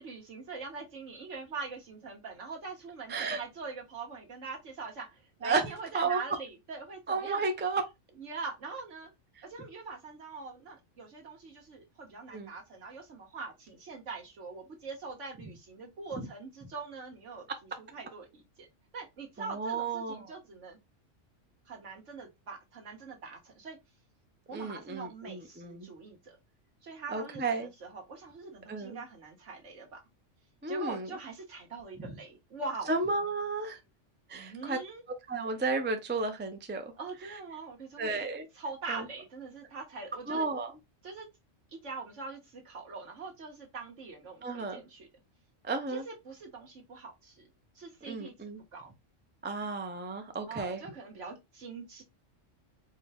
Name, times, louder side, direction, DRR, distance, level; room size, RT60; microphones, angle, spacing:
voice 1, 0.0-7.4 8.2-9.1 9.4-17.5 17.8-18.7 18.9-20.8 21.7-23.8 24.5-26.4 26.8-30.0 30.7-32.9 34.3-35.0 37.0-38.1 38.5-40.5 41.0-41.3 41.7-45.1 45.9-47.5 47.7-48.3 48.7-48.9 50.5-52.0, right 4 dB, 75° right, 1.6 m, -43 dB
voice 2, 3.1-3.4 5.4-5.7 5.9-6.2 7.1-7.8 12.3-12.5 16.1-16.3 19.4-20.3 24.5-25.9 27.1-27.7 28.7-29.0 30.6-31.1 32.0-32.1 32.9-33.8 34.3-34.8 35.3-36.9 38.0-38.5 38.9-39.1 40.3-40.7 44.4-44.8 45.6-46.0 48.1-48.6 49.4-50.8, right 3 dB, 15° right, 0.3 m, -33 dB
4.6 x 2.3 x 3.4 m
omnidirectional pair, 1.3 m